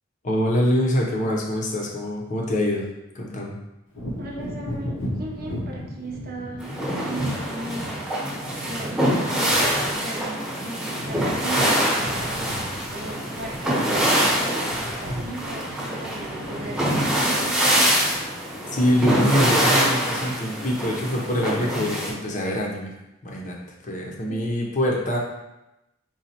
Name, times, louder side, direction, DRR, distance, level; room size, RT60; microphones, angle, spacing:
voice 1, 0.2-2.9 3.1-3.6 15.1-15.3 18.7-22.9 23.2-23.6 23.8-25.2, equal, 40° left, -1 dB, 0.7 m, -24 dB
Wind / Thunder, 3.9-11.5 11.8-19.0 19.4-19.6, left 1 dB, 80° left, 0.8 m, -37 dB
voice 2, 4.2-7.9 8.6-18.0 24.3-24.4, right 2 dB, 50° right, -1 dB, 0.7 m, -36 dB
sound 1, 6.6-22.1, equal, 5° right, 1.0 m, -24 dB
4.2 x 2.2 x 4.2 m, 0.93 s
head